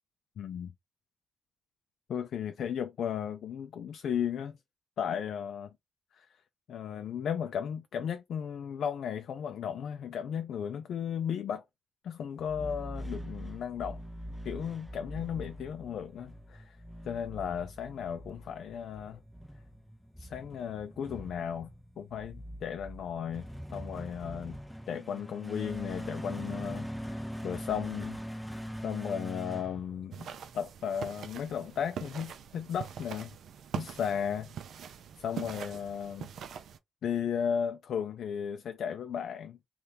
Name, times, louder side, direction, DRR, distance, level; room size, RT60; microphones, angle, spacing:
voice 1, 0.4-0.7 2.1-4.6 5.0-5.7 6.2-6.3 6.7-11.6 12.0-14.0 14.4-16.8 17.0-19.2 20.2-21.7 22.0-23.4 23.7-24.6 24.9-28.2 28.8-30.3 30.5-33.3 33.7-36.3 37.0-39.6, left 8 dB, 85° left, 0.3 m, -35 dB
sound 1, 12.4-30.5, equal, ahead, 0.5 m, -42 dB
sound 2, 30.1-36.8, right 8 dB, 85° right, 0.4 m, -42 dB
2.8 x 2.3 x 3.3 m
cardioid pair, 105°, 0 cm